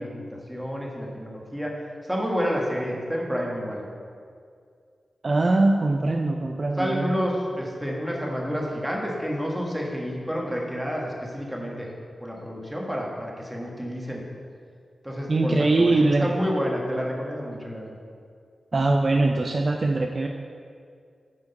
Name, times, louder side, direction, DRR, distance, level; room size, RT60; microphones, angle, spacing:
voice 1, 0.0-1.7 2.0-3.8 6.8-11.9 12.2-14.2 15.0-17.9, equal, 5° right, -2 dB, 1.4 m, -29 dB
voice 2, 5.2-7.1 15.3-16.3 18.7-20.3, right 2 dB, 45° right, 3 dB, 0.4 m, -22 dB
8.1 x 4.9 x 5.3 m, 2.2 s
wide cardioid pair, 90°, 0 cm